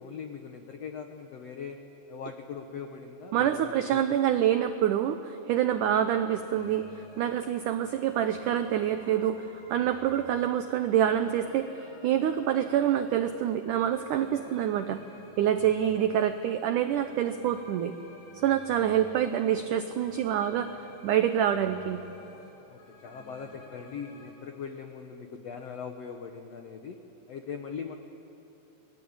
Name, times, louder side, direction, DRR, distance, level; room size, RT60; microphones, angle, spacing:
voice 1, 0.0-1.8 2.1-4.2 22.7-27.0 27.3-27.9, left 6 dB, 80° left, 4 dB, 1.4 m, -41 dB
voice 2, 3.3-6.9 7.2-15.0 15.4-17.9 18.4-20.7 21.0-22.0, right 10 dB, 90° right, 9 dB, 1.8 m, -26 dB
sound 1, 6.5-24.3, left 1 dB, 40° left, 4.9 m, -52 dB
29.5 x 21.0 x 8.7 m, 2.9 s
omnidirectional pair, 4.7 m